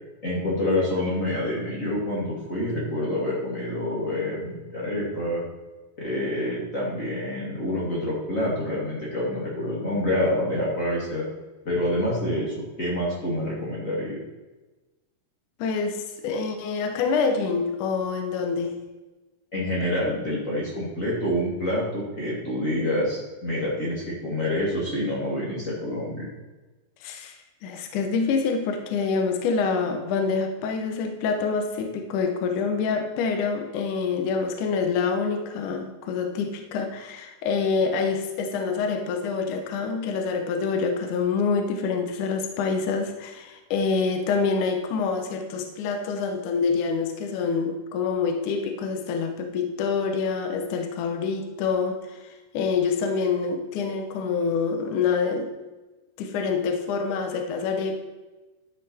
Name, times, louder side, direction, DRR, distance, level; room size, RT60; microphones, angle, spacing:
voice 1, 0.2-5.4 6.0-11.2 11.6-14.2 19.5-26.3, left 1 dB, 35° left, -5 dB, 1.3 m, -27 dB
voice 2, 15.6-18.8 27.0-27.4 27.6-52.2 52.5-55.5 56.2-58.0, left 5 dB, 75° left, 5 dB, 1.8 m, -26 dB
12.0 x 5.9 x 4.2 m, 1.2 s
omnidirectional pair, 4.8 m